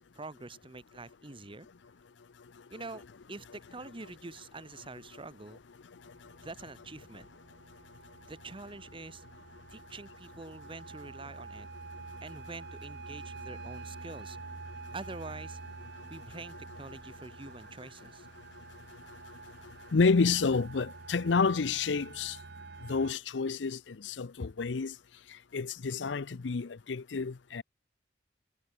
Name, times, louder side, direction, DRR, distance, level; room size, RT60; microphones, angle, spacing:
voice 1, 0.1-1.7 2.7-5.6 6.4-7.3 8.3-9.2 9.7-11.7 12.2-14.4 14.9-15.6 16.1-18.3, right 3 dB, 30° right, 1.6 m, -46 dB
sound 1, 6.0-23.1, right 4 dB, 65° right, 1.2 m, -48 dB
voice 2, 19.9-22.4 22.9-24.9 25.5-27.6, left 4 dB, 75° left, 0.6 m, -29 dB
head